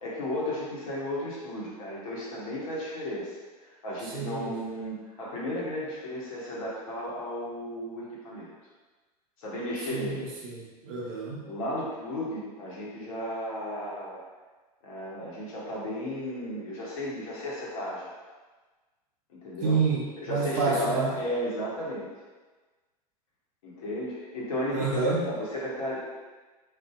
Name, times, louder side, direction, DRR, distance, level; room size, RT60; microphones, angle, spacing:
voice 1, 0.0-8.5 9.4-10.3 11.4-14.2 14.8-18.1 19.3-19.8 20.2-22.1 23.6-26.0, equal, 60° left, -5 dB, 0.8 m, -34 dB
voice 2, 4.1-4.5 9.9-11.4 19.6-21.1 24.7-25.2, right 4 dB, 50° right, -3 dB, 0.7 m, -28 dB
2.5 x 2.3 x 2.3 m, 1.3 s
figure-of-eight pair, 85°, 20 cm